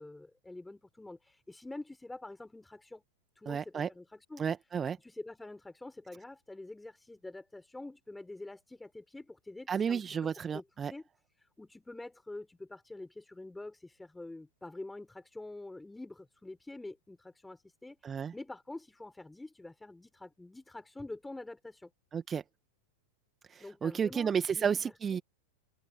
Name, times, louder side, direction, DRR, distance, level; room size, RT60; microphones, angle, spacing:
voice 1, 0.0-3.0 3.4-4.5 5.0-11.0 11.4-21.9 23.6-24.3 24.6-25.2, left 2 dB, 5° left, 6.9 m, -47 dB
voice 2, 3.5-3.9 4.4-5.0 9.7-10.9 18.0-18.3 22.1-22.4 23.5-25.2, right 7 dB, 20° right, 2.0 m, -32 dB
figure-of-eight pair, 90°, 0 cm